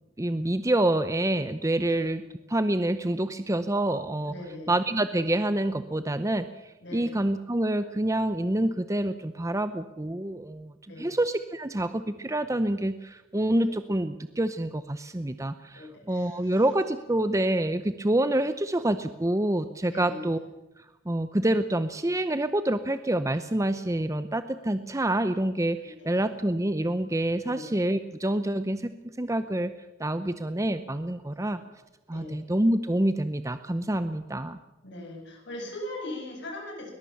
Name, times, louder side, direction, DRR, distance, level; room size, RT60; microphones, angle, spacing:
voice 1, 0.2-2.2 2.5-4.3 4.7-20.4 20.8-28.9 29.2-29.7 30.0-31.6 32.1-34.6, right 1 dB, 15° right, 11 dB, 0.7 m, -27 dB
voice 2, 1.9-2.2 4.3-4.8 6.8-7.2 10.9-11.2 13.7-13.8 15.7-16.7 19.9-20.3 25.8-26.2 27.4-27.7 31.3-31.6 32.1-32.4 34.8-36.9, left 1 dB, 60° left, 0 dB, 7.8 m, -40 dB
21.5 x 21.0 x 7.1 m, 1.0 s
head